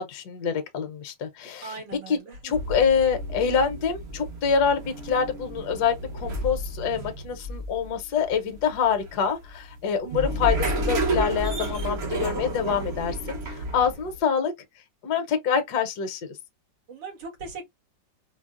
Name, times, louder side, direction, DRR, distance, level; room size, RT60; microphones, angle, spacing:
voice 1, 0.0-1.8 2.1-2.2 2.4-14.5 15.0-16.2, left 6 dB, 65° left, 1.2 m, -26 dB
voice 2, 1.6-2.5 16.9-17.7, right 4 dB, 90° right, 2.3 m, -39 dB
sound 1, 2.5-14.2, right 1 dB, 50° right, 0.8 m, -31 dB
4.5 x 2.0 x 2.4 m
omnidirectional pair, 2.0 m